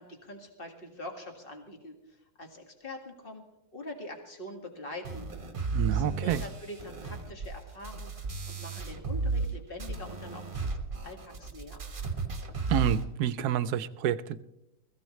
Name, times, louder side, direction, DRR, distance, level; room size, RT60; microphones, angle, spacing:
voice 1, 0.0-2.0 2.4-3.4 3.7-5.3 5.9-8.1 8.5-10.7 11.0-11.8, left 1 dB, 30° left, 3 dB, 2.1 m, -44 dB
sound 1, 5.0-9.5 9.8-13.0, right 4 dB, 35° right, 1.4 m, -34 dB
voice 2, 5.7-6.4 12.7-14.4, right 10 dB, 70° right, 15 dB, 1.1 m, -28 dB
21.0 x 15.5 x 3.2 m, 0.89 s
omnidirectional pair, 1.8 m